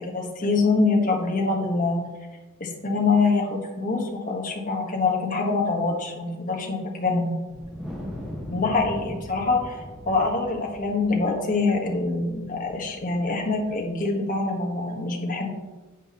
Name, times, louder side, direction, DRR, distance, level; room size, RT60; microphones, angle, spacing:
voice 1, 0.1-2.0 2.6-7.3 8.5-15.5, left 3 dB, 40° left, 1 dB, 1.4 m, -25 dB
Wind, 7.5-14.0, left 1 dB, ahead, 1.5 m, -40 dB
9.0 x 7.8 x 3.1 m, 1.2 s
head